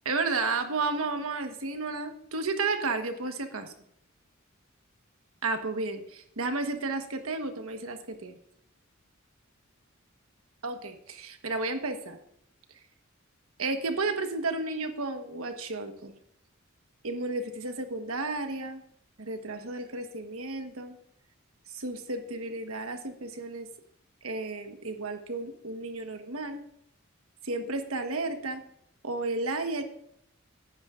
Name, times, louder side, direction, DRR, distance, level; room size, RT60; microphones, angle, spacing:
voice 1, 0.0-3.7 5.4-8.4 10.6-12.2 13.6-16.1 17.0-18.8 19.2-21.0 21.7-23.7 24.2-26.6 27.4-28.6 29.0-29.8, right 3 dB, 90° right, 6 dB, 1.3 m, -32 dB
15.5 x 9.7 x 2.5 m, 0.74 s
head